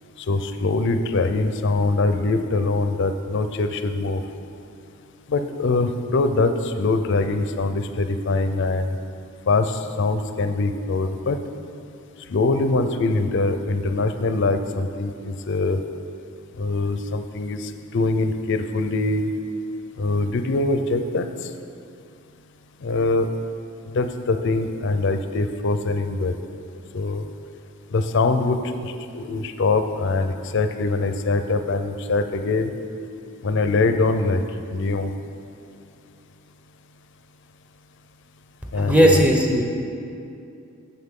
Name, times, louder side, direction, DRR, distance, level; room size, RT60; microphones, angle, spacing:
voice 1, 0.3-4.2 5.3-8.9 9.5-11.4 12.3-15.8 16.6-19.3 20.0-21.3 22.8-23.3 23.9-26.3 26.9-27.3 27.9-32.7 33.4-34.4 34.7-35.1 38.7-39.3, left 3 dB, 55° left, 8 dB, 0.4 m, -23 dB
voice 2, 38.7-39.6, right 1 dB, 5° right, 0 dB, 0.7 m, -17 dB
9.6 x 7.0 x 3.7 m, 2.5 s
head